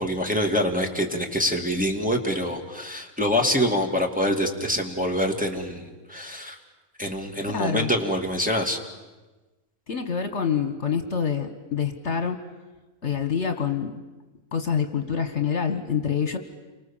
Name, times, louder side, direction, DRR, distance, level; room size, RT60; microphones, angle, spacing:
voice 1, 0.0-6.6 7.0-8.8, equal, 5° right, 0 dB, 2.4 m, -25 dB
voice 2, 7.5-7.9 9.9-12.4 13.0-14.0 14.5-16.4, left 7 dB, 55° left, 7 dB, 1.8 m, -26 dB
29.5 x 25.0 x 7.4 m, 1.2 s
omnidirectional pair, 1.5 m